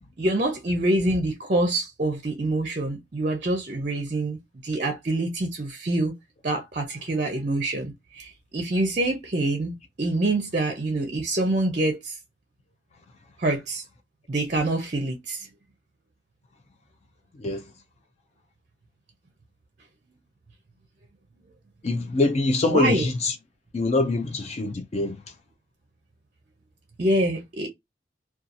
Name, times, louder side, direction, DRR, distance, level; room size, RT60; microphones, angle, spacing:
voice 1, 0.2-6.1 6.4-12.2 13.4-13.8 14.3-15.5 22.7-23.1 27.0-27.7, right 2 dB, 40° right, 0.5 m, -26 dB
voice 2, 21.8-23.3 23.7-25.2, left 2 dB, 35° left, 0.4 m, -24 dB
2.7 x 2.3 x 2.5 m
head